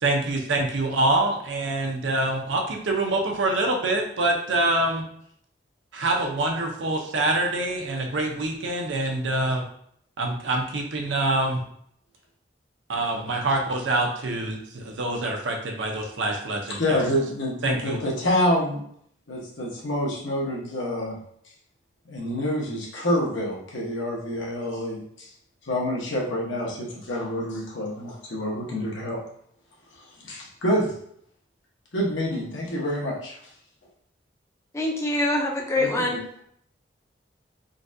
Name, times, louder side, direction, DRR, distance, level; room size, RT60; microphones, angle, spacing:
voice 1, 0.0-5.0 5.9-9.6 10.2-11.6 12.9-17.0 17.6-18.0, right 2 dB, 85° right, 2 dB, 0.6 m, -25 dB
voice 2, 16.7-18.8 19.3-21.2 22.1-25.3 25.6-29.2 30.2-30.9 31.9-33.3 35.8-35.9, left 1 dB, 85° left, -3 dB, 1.0 m, -27 dB
voice 3, 34.7-36.2, left 1 dB, 15° left, 0 dB, 0.4 m, -24 dB
3.8 x 2.3 x 2.6 m, 0.67 s
head